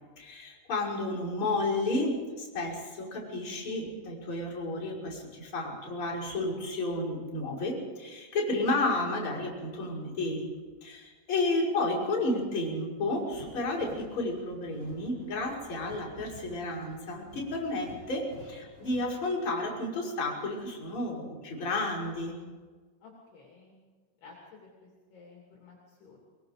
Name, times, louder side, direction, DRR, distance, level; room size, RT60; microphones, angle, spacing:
voice 1, 0.2-10.5 10.8-22.4, left 2 dB, 25° left, -6 dB, 6.4 m, -32 dB
sound 1, 13.2-19.3, right 1 dB, 60° right, 7.6 m, -52 dB
voice 2, 23.0-23.8 24.2-26.2, left 4 dB, 55° left, -2 dB, 4.7 m, -53 dB
23.5 x 23.0 x 5.1 m, 1.4 s
omnidirectional pair, 5.8 m